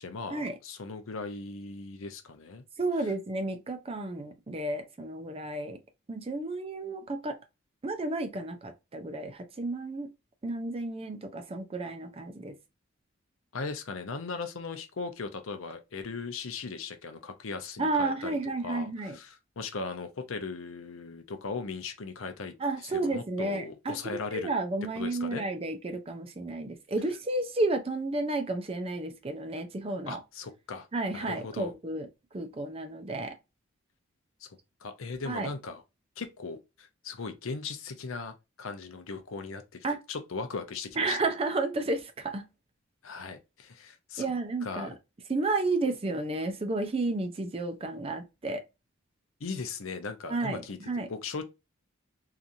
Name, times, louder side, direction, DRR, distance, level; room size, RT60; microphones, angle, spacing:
voice 1, 0.0-2.6 13.5-24.5 25.0-25.4 30.1-30.9 31.1-31.7 34.4-34.5 34.8-35.8 36.2-41.2 43.0-44.3 44.6-45.0 49.4-51.4, left 4 dB, 70° left, 0.6 m, -38 dB
voice 2, 2.8-5.8 6.1-7.4 7.8-10.1 10.4-12.6 17.8-19.2 22.6-30.2 30.9-32.1 32.3-33.3 35.3-35.5 39.8-40.0 41.0-42.4 44.2-44.9 45.3-48.6 50.3-51.1, right 2 dB, 25° right, 0.4 m, -32 dB
2.8 x 2.4 x 2.5 m
head